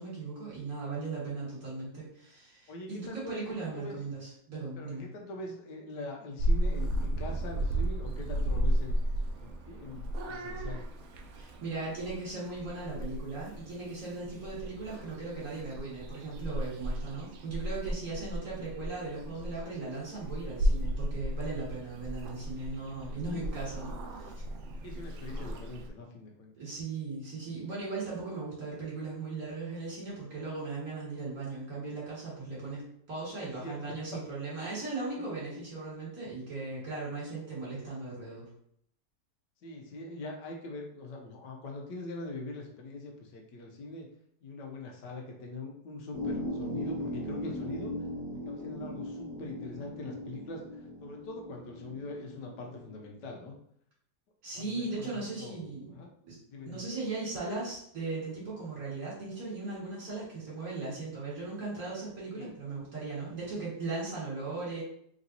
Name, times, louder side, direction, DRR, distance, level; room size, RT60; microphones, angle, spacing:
voice 1, 0.0-4.2 4.5-5.0 11.3-24.3 26.6-38.4 54.4-56.0 56.2-56.4 56.6-64.8, right 3 dB, 60° right, -6 dB, 2.4 m, -38 dB
voice 2, 2.7-4.0 4.8-8.9 9.4-10.8 14.2-14.4 24.8-26.5 33.4-33.8 34.1-34.2 35.2-35.6 39.6-44.1 44.4-47.9 48.4-53.5 54.5-56.1 56.5-56.8 62.4-62.6, left 2 dB, 85° left, 1 dB, 1.4 m, -43 dB
Purr / Meow, 6.4-25.9, equal, 75° right, 0.6 m, -34 dB
sound 1, 46.1-53.1, left 1 dB, 65° left, 1.2 m, -38 dB
4.0 x 3.5 x 2.7 m, 0.69 s
omnidirectional pair, 1.8 m